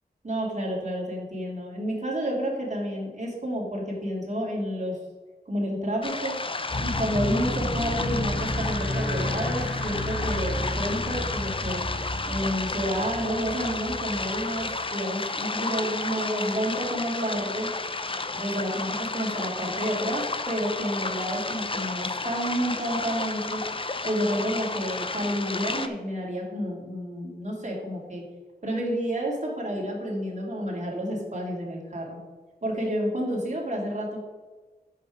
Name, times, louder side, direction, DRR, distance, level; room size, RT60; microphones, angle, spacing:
voice 1, 0.2-5.0 5.5-6.4 6.8-11.8 12.3-17.7 18.3-23.6 24.0-28.2 28.6-32.2 32.6-34.2, equal, 45° right, -2 dB, 2.7 m, -30 dB
sound 1, 6.0-25.9, left 3 dB, 30° left, 0.6 m, -32 dB
sound 2, 6.7-14.8, left 1 dB, 50° left, 2.6 m, -32 dB
8.4 x 6.7 x 4.9 m, 1.3 s
wide cardioid pair, 90°, 17 cm